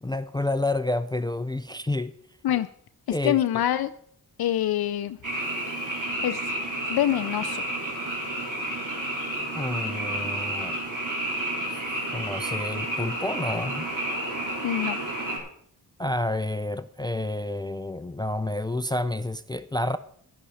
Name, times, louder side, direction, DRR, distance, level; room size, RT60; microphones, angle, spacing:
voice 1, 0.0-2.2 3.1-3.4 9.5-10.8 11.7-11.8 12.1-13.9 16.0-20.0, left 1 dB, 10° left, 13 dB, 0.4 m, -29 dB
voice 2, 3.2-3.9 4.4-5.2 6.2-6.4 6.9-7.6 14.6-15.0, left 11 dB, 70° left, 10 dB, 0.5 m, -25 dB
Frog, 5.2-15.4, right 1 dB, 50° right, 3.6 m, -31 dB
11.5 x 11.5 x 4.2 m, 0.63 s
cardioid pair, 70°, 39 cm